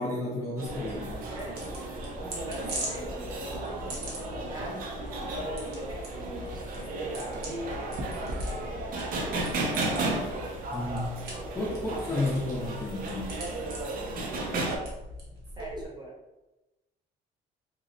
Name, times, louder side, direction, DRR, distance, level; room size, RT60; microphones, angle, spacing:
voice 1, 0.0-1.2 10.7-11.1 11.6-13.4, left 2 dB, 15° left, -5 dB, 0.6 m, -32 dB
sound 1, 0.6-14.8, right 2 dB, 55° right, 0.5 m, -34 dB
sound 2, 0.7-15.8, equal, 80° right, 0.9 m, -41 dB
voice 2, 1.3-1.9 2.4-7.4 8.1-10.0 11.3-11.5 13.6-14.7 15.5-16.1, right 2 dB, 25° right, -4 dB, 0.9 m, -43 dB
2.7 x 2.0 x 2.6 m, 1.0 s
cardioid pair, 110°, 17 cm